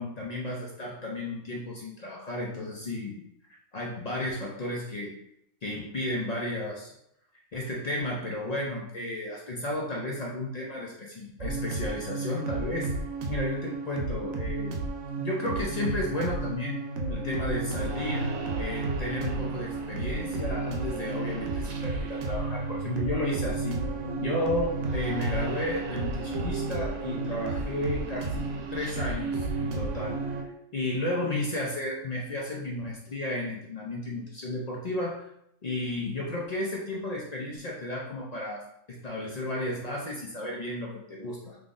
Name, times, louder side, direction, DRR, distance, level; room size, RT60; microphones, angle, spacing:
voice 1, 0.0-3.2 3.5-5.1 5.6-6.9 7.5-12.9 13.3-14.8 15.2-16.8 17.1-18.3 18.6-23.8 24.2-30.3 30.7-35.3 35.6-38.6 38.9-41.6, left 1 dB, 55° left, -3 dB, 0.4 m, -33 dB
sound 1, 11.4-30.4, right 3 dB, 85° right, 1.0 m, -32 dB
3.7 x 3.2 x 2.5 m, 0.75 s
omnidirectional pair, 1.4 m